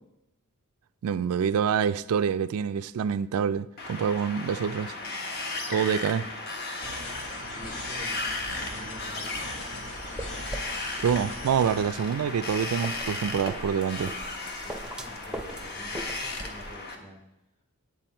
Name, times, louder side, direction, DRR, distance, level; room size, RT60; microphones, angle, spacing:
voice 1, 1.0-4.9 5.7-6.2 10.8-14.1, right 7 dB, 80° right, 13 dB, 0.3 m, -26 dB
Wind, 3.8-17.0, left 2 dB, 45° left, 1.2 m, -36 dB
sound 1, 6.8-11.8, left 1 dB, 80° left, 2.7 m, -41 dB
voice 2, 7.5-9.4 14.6-17.2, equal, 30° left, -3 dB, 4.3 m, -47 dB
sound 2, 10.0-16.7, right 1 dB, 5° right, 0.6 m, -41 dB
9.1 x 8.3 x 4.4 m, 0.86 s
head